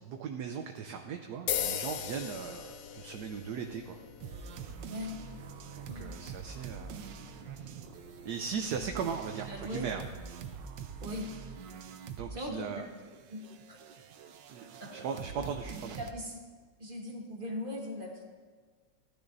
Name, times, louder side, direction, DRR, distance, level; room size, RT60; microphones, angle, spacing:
voice 1, 0.0-4.0 5.8-7.0 7.5-7.7 8.2-10.0 12.1-12.8 14.5-16.0, right 6 dB, 70° right, 5 dB, 1.2 m, -38 dB
sound 1, 1.5-9.6, left 8 dB, 75° left, 0.7 m, -41 dB
sound 2, 4.2-12.4 12.7-16.1, right 7 dB, 90° right, 1.4 m, -45 dB
voice 2, 5.9-6.2 7.1-7.3 9.5-9.9 11.0-11.3 12.3-12.6 13.3-13.8 14.8-14.9 15.8-16.4 16.8-18.2, left 1 dB, 35° right, 1 dB, 1.3 m, -40 dB
15.0 x 12.5 x 2.6 m, 1.5 s
omnidirectional pair, 1.9 m